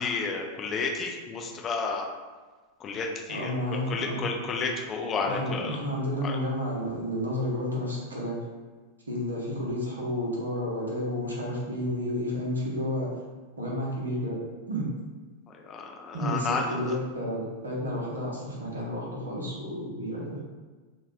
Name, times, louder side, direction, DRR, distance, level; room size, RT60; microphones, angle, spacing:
voice 1, 0.0-2.1 2.8-5.8 6.2-6.4 15.6-16.6, left 4 dB, 25° left, 1 dB, 0.4 m, -31 dB
voice 2, 3.3-4.2 5.2-8.4 9.1-13.1 13.6-14.4 14.7-14.9 16.1-20.4, equal, 75° right, -4 dB, 0.8 m, -31 dB
2.8 x 2.2 x 3.3 m, 1.3 s
figure-of-eight pair, 90°, 0 cm